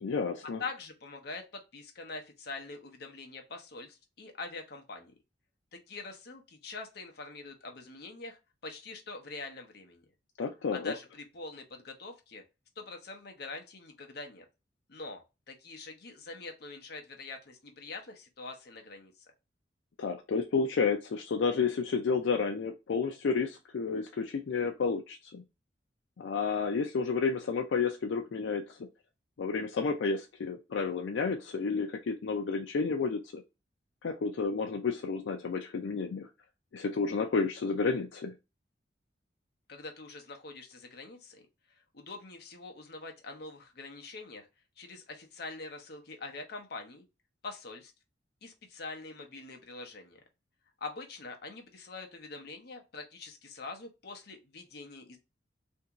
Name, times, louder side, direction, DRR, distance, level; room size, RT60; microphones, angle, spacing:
voice 1, 0.0-0.6 10.4-10.9 20.0-25.4 26.2-28.8 29.4-33.4 34.0-36.3 36.7-38.3, left 5 dB, 85° left, 4 dB, 0.4 m, -31 dB
voice 2, 0.6-5.1 5.7-10.0 10.7-12.4 12.8-14.5 14.9-19.1 39.7-41.5 41.9-44.5 44.8-47.1 47.4-47.9 48.4-50.2 50.8-55.2, left 3 dB, 60° left, 3 dB, 0.8 m, -44 dB
2.8 x 2.7 x 3.5 m, 0.26 s
head